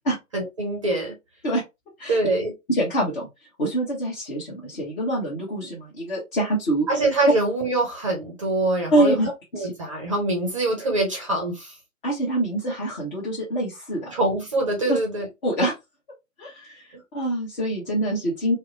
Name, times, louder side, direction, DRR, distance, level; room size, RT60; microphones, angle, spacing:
voice 1, 0.3-1.1 2.1-2.5 6.9-9.3 9.5-11.8 14.1-15.3 16.9-17.0, right 2 dB, 25° right, 0.5 m, -24 dB
voice 2, 2.7-3.3 3.6-6.9 8.9-9.7 12.0-14.1 14.9-15.0 15.4-15.7 16.4-16.9 17.1-18.6, right 1 dB, 40° left, 1.1 m, -25 dB
2.7 x 2.0 x 2.6 m
figure-of-eight pair, 130°, 40 cm